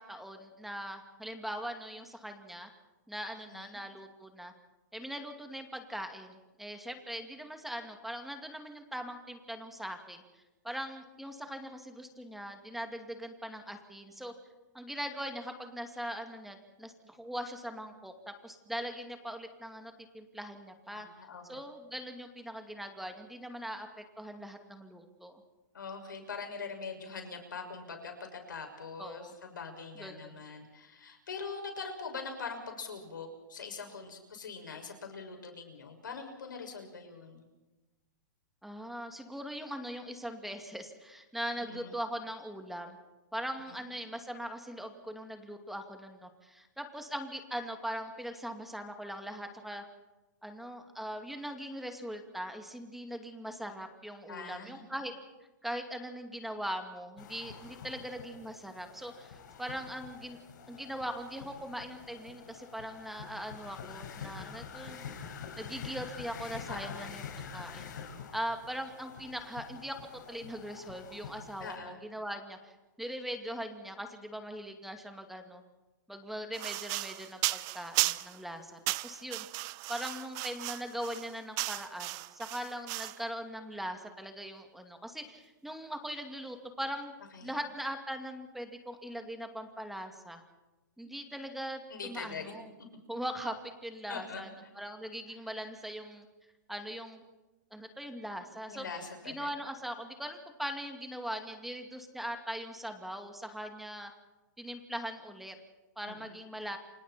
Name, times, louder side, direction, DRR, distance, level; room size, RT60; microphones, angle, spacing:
voice 1, 0.0-2.7 3.1-4.5 4.9-14.3 14.7-21.1 21.5-25.4 29.0-29.3 30.0-30.4 38.6-43.0 43.3-49.8 50.4-55.1 55.6-60.4 60.7-65.1 65.6-67.2 67.5-68.0 68.3-70.0 70.3-75.6 76.1-79.5 79.9-87.1 87.4-90.4 91.0-92.7 93.1-94.5 94.7-96.3 96.7-97.2 97.7-98.9 99.2-104.1 104.6-105.5 106.0-106.8, equal, ahead, 5 dB, 2.4 m, -41 dB
voice 2, 20.9-21.6 25.7-37.5 41.7-42.0 43.6-43.9 54.3-54.8 66.7-67.1 71.6-72.0 87.3-87.6 91.9-92.6 94.1-94.7 98.7-99.5 106.0-106.3, left 5 dB, 85° left, 5 dB, 6.2 m, -43 dB
sound 1, 57.2-71.8, left 6 dB, 70° left, 5.3 m, -46 dB
sound 2, 76.5-78.4 78.9-83.2, right 22 dB, 35° right, 0.8 m, -35 dB
29.0 x 26.0 x 4.4 m, 1.1 s
hypercardioid pair, 135°, 10 cm